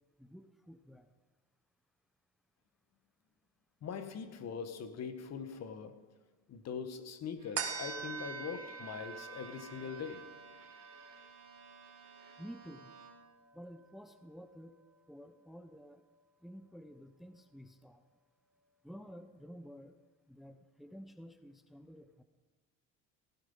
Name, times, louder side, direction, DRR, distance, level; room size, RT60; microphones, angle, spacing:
voice 1, 0.2-1.1 12.4-12.9 13.5-14.8 15.1-16.0 16.4-18.0 18.8-20.0 20.3-22.2, equal, ahead, 0.9 m, -51 dB
voice 2, 3.8-6.1 6.5-10.3, left 6 dB, 50° left, 1.6 m, -42 dB
Bowed string instrument, 7.4-13.5, right 6 dB, 85° right, 3.3 m, -57 dB
sound 1, 7.6-14.3 14.8-14.9, right 6 dB, 45° right, 2.2 m, -45 dB
16.0 x 16.0 x 5.6 m
supercardioid pair, 100°, 34 cm